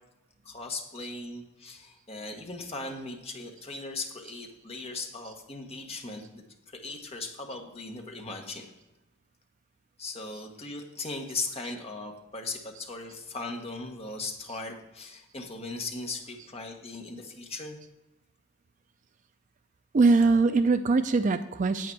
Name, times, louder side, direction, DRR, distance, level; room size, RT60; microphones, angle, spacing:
voice 1, 0.4-8.7 10.0-17.8, left 3 dB, 25° left, 2 dB, 1.2 m, -38 dB
voice 2, 19.9-21.9, right 3 dB, 35° right, 11 dB, 0.3 m, -22 dB
8.6 x 8.3 x 4.6 m, 1.1 s
head